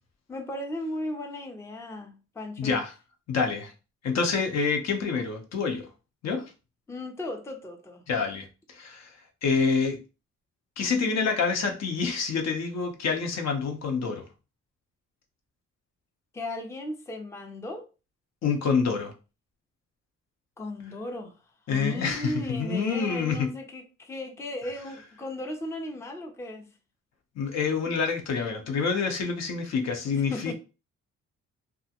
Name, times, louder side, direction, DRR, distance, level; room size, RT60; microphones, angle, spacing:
voice 1, 0.3-2.8 6.9-8.0 16.3-17.9 20.6-21.3 21.7-26.7 30.3-30.5, left 1 dB, 10° left, 0.4 m, -36 dB
voice 2, 2.6-2.9 3.3-3.7 4.0-5.9 6.2-6.5 8.1-9.1 9.4-10.0 10.8-14.2 18.4-19.1 21.7-23.5 27.4-30.5, left 5 dB, 60° left, 0.7 m, -27 dB
2.4 x 2.1 x 2.7 m
cardioid pair, 90°, 30 cm